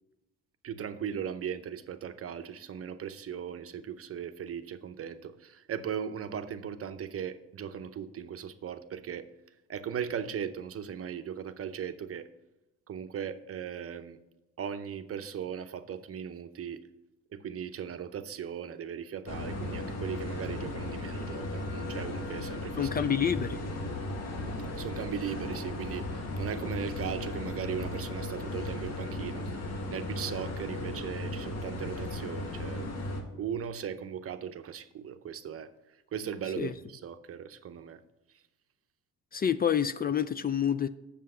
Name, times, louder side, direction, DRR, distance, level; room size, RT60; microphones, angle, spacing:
voice 1, 0.6-9.3 9.7-12.3 12.9-14.2 14.6-16.8 17.3-22.9 24.7-29.4 29.9-32.9 33.4-35.7 36.1-38.0, right 8 dB, 50° right, 10 dB, 0.7 m, -38 dB
sound 1, 19.3-33.2, left 1 dB, 60° left, 1.7 m, -36 dB
voice 2, 22.8-23.6 36.6-36.7 39.3-40.9, left 8 dB, 30° left, 13 dB, 0.4 m, -28 dB
7.5 x 6.8 x 5.5 m, 0.97 s
cardioid pair, 90°, 30 cm